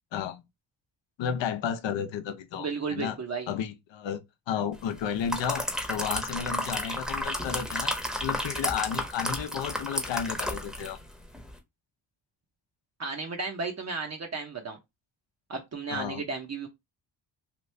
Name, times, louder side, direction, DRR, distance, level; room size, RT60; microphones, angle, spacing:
voice 1, 0.1-0.4 1.2-3.2 3.5-7.9 8.2-11.0 15.9-16.2, left 8 dB, 70° left, 0.7 m, -32 dB
voice 2, 2.6-3.5 13.0-14.8 15.5-16.7, right 4 dB, 35° right, 0.7 m, -34 dB
sound 1, 5.0-11.0 11.3-11.5, equal, ahead, 0.8 m, -32 dB
3.0 x 2.6 x 3.1 m
cardioid pair, 80°, 45 cm